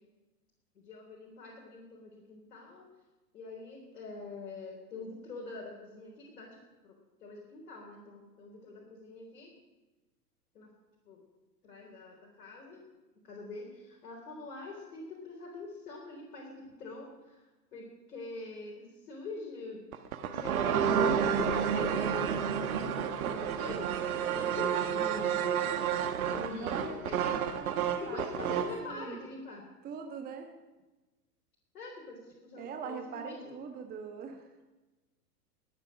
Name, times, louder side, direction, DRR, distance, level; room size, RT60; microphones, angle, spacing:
voice 1, 0.7-2.9 3.3-9.6 10.5-10.7 11.1-11.2 11.6-12.8 13.2-19.8 20.2-22.4 22.7-23.9 24.3-25.4 26.3-27.4 28.0-29.6 31.7-33.6, left 3 dB, 60° left, -2 dB, 3.9 m, -44 dB
sound 1, 19.9-28.8, right 8 dB, 60° right, 1.4 m, -30 dB
voice 2, 26.6-29.2 29.8-30.5 32.6-34.4, right 6 dB, 20° right, 4 dB, 1.1 m, -42 dB
21.5 x 9.1 x 6.2 m, 1.1 s
figure-of-eight pair, 100°, 49 cm